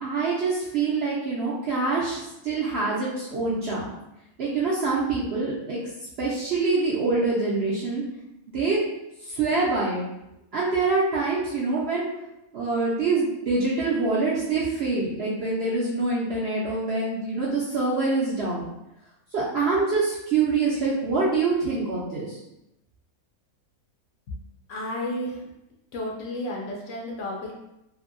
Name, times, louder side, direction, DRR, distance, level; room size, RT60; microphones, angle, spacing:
voice 1, 0.0-3.8 4.4-5.8 6.2-8.0 8.5-8.8 9.2-10.0 10.5-12.1 12.5-18.6 19.3-22.4, right 3 dB, 65° right, -6 dB, 0.6 m, -25 dB
voice 2, 24.7-25.4 25.9-27.5, left 1 dB, 65° left, -2 dB, 0.8 m, -32 dB
2.7 x 2.6 x 2.5 m, 0.88 s
omnidirectional pair, 1.5 m